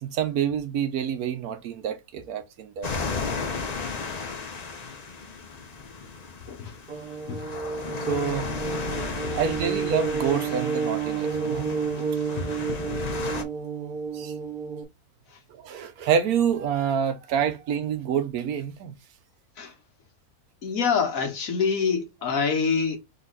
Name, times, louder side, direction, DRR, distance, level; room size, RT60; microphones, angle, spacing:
voice 1, 0.0-2.9 8.1-8.5 9.3-11.6 14.1-14.3 15.5-18.9, right 8 dB, 75° right, 1.2 m, -27 dB
sound 1, 2.8-13.4, left 4 dB, 45° left, 0.5 m, -34 dB
sound 2, 6.9-14.8, right 5 dB, 45° right, 0.7 m, -30 dB
voice 2, 12.0-12.7 19.6-19.7 20.6-23.0, left 5 dB, 65° left, 1.4 m, -27 dB
4.0 x 2.9 x 3.9 m
omnidirectional pair, 1.6 m